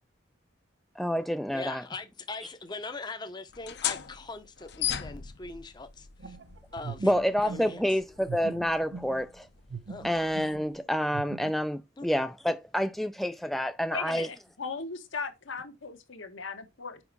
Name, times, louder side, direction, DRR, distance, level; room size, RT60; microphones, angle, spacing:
voice 1, 1.0-1.8 7.0-9.5 10.0-14.3, equal, ahead, 0.3 m, -28 dB
voice 2, 1.5-6.4 6.7-7.1 7.4-7.8 9.9-10.1 12.0-12.1, left 3 dB, 20° left, 0.7 m, -41 dB
sound 1, 3.5-10.8, left 10 dB, 55° left, 0.7 m, -39 dB
sound 2, 6.2-9.4 9.7-10.7 11.1-11.5, right 4 dB, 70° right, 0.8 m, -41 dB
voice 3, 13.9-17.0, left 5 dB, 80° left, 1.3 m, -37 dB
5.9 x 5.1 x 4.6 m
head